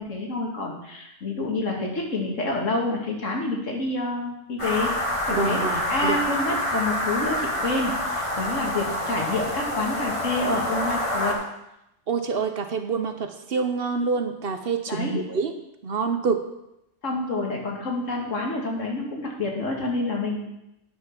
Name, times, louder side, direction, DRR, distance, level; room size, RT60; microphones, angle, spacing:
voice 1, 0.0-4.9 5.3-11.3 14.9-15.2 17.0-20.4, left 2 dB, 85° left, 0 dB, 2.3 m, -28 dB
sound 1, 4.6-11.3, left 1 dB, 25° left, 1.7 m, -27 dB
voice 2, 5.3-6.2 12.1-15.5 15.8-16.4, right 5 dB, 55° right, 7 dB, 1.0 m, -26 dB
10.0 x 6.4 x 5.9 m, 0.85 s
omnidirectional pair, 1.3 m